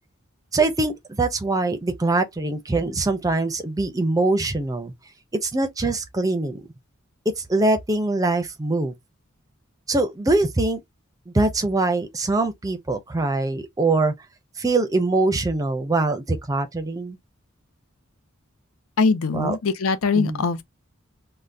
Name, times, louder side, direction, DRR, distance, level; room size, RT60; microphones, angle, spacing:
voice 1, 0.5-4.9 5.4-6.7 7.3-8.9 9.9-10.8 11.3-14.1 14.6-17.2 19.4-19.5 20.2-20.3, right 2 dB, 15° right, 0.5 m, -23 dB
voice 2, 19.0-20.6, left 4 dB, 85° left, 0.5 m, -22 dB
3.5 x 2.1 x 2.5 m
head